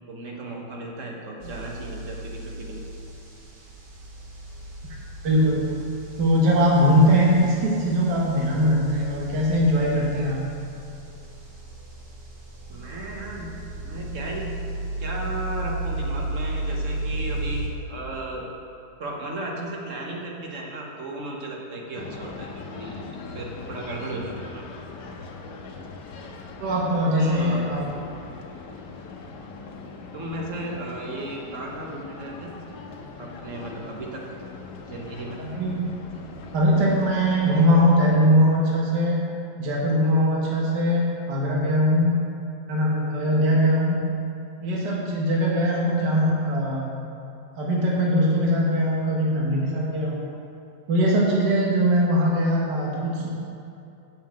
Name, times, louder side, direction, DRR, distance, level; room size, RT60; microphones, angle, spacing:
voice 1, 0.1-2.8 12.7-13.5 13.8-14.6 15.0-18.5 19.0-24.6 27.1-27.6 30.1-32.5 33.2-34.3 34.9-35.4, right 1 dB, 50° right, -1 dB, 1.4 m, -35 dB
sound 1, 1.4-17.7, right 2 dB, 35° right, 1.2 m, -35 dB
voice 2, 5.2-5.7 6.2-10.4 26.6-27.8 35.4-35.9 36.5-39.2 39.6-42.2 42.7-44.0 44.6-46.9 47.6-50.2 50.9-53.3, equal, 75° right, -4 dB, 1.8 m, -21 dB
sound 2, 22.0-38.1, left 4 dB, 85° left, 1.5 m, -40 dB
7.5 x 5.6 x 7.3 m, 2.6 s
omnidirectional pair, 1.8 m